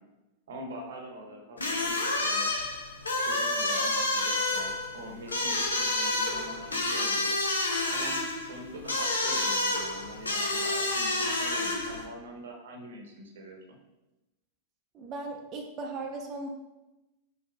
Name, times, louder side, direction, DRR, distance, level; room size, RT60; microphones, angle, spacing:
voice 1, 0.5-2.5 3.1-7.3 7.8-8.2 8.4-13.6, right 1 dB, 65° right, 3 dB, 0.9 m, -44 dB
sound 1, 1.6-12.0, left 2 dB, 80° left, 0.7 m, -29 dB
voice 2, 14.9-16.5, right 3 dB, 35° right, 2 dB, 0.5 m, -37 dB
5.1 x 4.2 x 2.4 m, 0.99 s
figure-of-eight pair, 90°, 0 cm